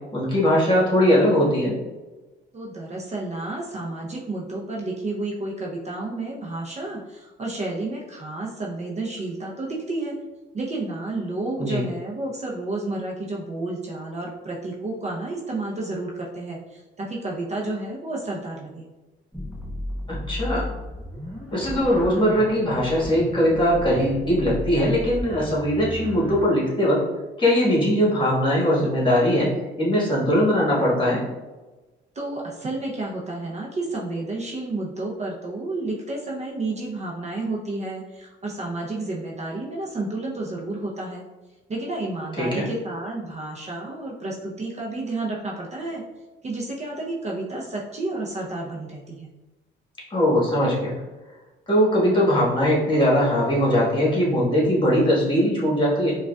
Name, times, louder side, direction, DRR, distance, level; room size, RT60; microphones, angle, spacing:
voice 1, 0.1-1.7 11.6-11.8 20.1-20.7 21.5-27.0 27.4-29.5 29.8-31.2 42.4-42.6 50.1-50.9 51.7-56.2, equal, 25° left, -5 dB, 1.4 m, -20 dB
voice 2, 2.5-10.2 10.5-18.9 32.1-41.2 41.7-46.0 46.4-49.3, right 2 dB, 35° right, -2 dB, 0.6 m, -31 dB
sound 1, 19.3-26.4, left 1 dB, ahead, 0.8 m, -34 dB
4.8 x 2.4 x 2.3 m, 1.2 s
cardioid pair, 90°, 20 cm